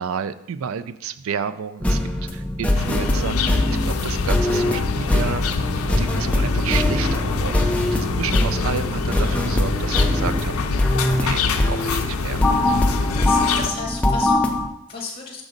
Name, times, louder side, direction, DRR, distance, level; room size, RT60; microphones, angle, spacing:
voice 1, 0.0-5.4 6.0-10.5 10.8-10.9 11.2-12.4, right 7 dB, 70° right, 14 dB, 0.3 m, -31 dB
sound 1, 1.8-14.7, left 1 dB, 5° left, 0.4 m, -22 dB
sound 2, 2.7-13.7, left 5 dB, 80° left, 0.5 m, -26 dB
voice 2, 13.1-15.4, left 4 dB, 25° left, -1 dB, 0.9 m, -33 dB
6.1 x 5.2 x 3.8 m, 0.84 s
head